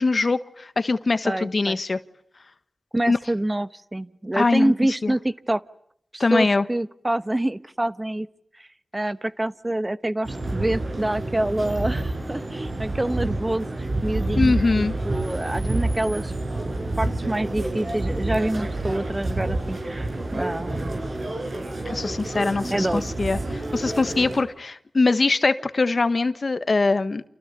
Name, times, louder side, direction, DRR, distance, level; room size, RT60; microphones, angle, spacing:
voice 1, 0.0-2.0 3.1-3.2 4.3-4.7 5.0-5.1 6.2-6.6 14.4-14.9 21.8-27.2, left 3 dB, 55° left, 12 dB, 1.4 m, -22 dB
voice 2, 1.2-1.8 2.9-5.6 6.1-8.3 8.6-8.7 8.9-16.3 17.0-21.0 22.7-23.0, right 1 dB, 20° right, 13 dB, 1.1 m, -26 dB
sound 1, 10.2-24.4, right 2 dB, 60° right, 7.6 m, -28 dB
30.0 x 28.5 x 6.9 m, 0.71 s
wide cardioid pair, 65°, 0 cm